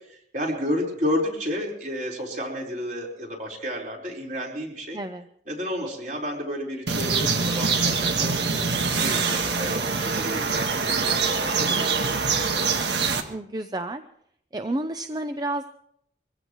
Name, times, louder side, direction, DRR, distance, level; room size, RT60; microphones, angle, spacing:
voice 1, 0.1-5.0 5.5-8.4 9.0-12.5, equal, 45° right, -2 dB, 4.4 m, -31 dB
voice 2, 4.9-5.2 13.3-14.0 14.5-15.7, right 1 dB, 25° right, 7 dB, 0.6 m, -30 dB
sound 1, 6.9-13.2, right 4 dB, 75° right, 1.6 m, -24 dB
23.5 x 15.5 x 3.1 m, 0.71 s
head